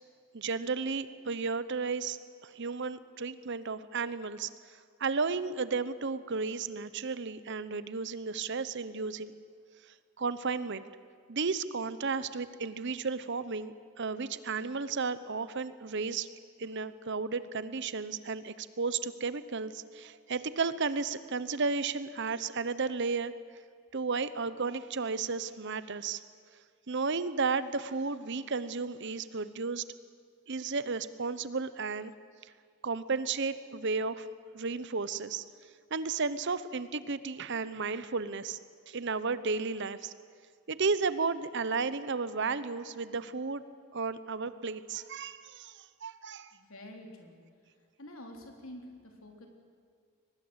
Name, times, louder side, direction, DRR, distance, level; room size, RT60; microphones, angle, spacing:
voice 1, 0.3-9.3 10.2-10.8 11.3-16.3 16.6-23.3 23.9-26.2 26.9-29.8 30.5-32.1 32.8-34.3 34.5-35.4 35.9-38.6 38.9-40.1 40.7-43.6 43.9-46.5, right 4 dB, 50° right, 15 dB, 0.8 m, -33 dB
voice 2, 46.5-47.4 48.0-49.5, left 1 dB, 65° left, 2 dB, 3.8 m, -48 dB
23.0 x 19.5 x 8.1 m, 2.1 s
head